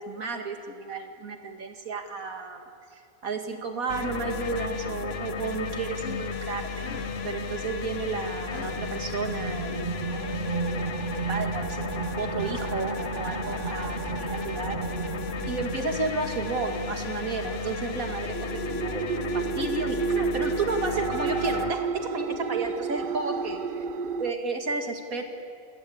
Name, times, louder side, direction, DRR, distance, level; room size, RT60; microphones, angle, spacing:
voice 1, 0.0-2.7 2.9-14.8 15.4-19.1 19.3-23.6 24.2-25.2, right 4 dB, 80° right, 4 dB, 2.5 m, -33 dB
sound 1, 3.4-3.8 4.1-9.5, left 4 dB, 65° left, 2.5 m, -46 dB
sound 2, 3.9-21.7, left 5 dB, 50° left, 1.2 m, -34 dB
sound 3, 8.6-24.3, right 5 dB, 50° right, 0.7 m, -32 dB
27.0 x 17.5 x 8.6 m, 2.4 s
omnidirectional pair, 1.5 m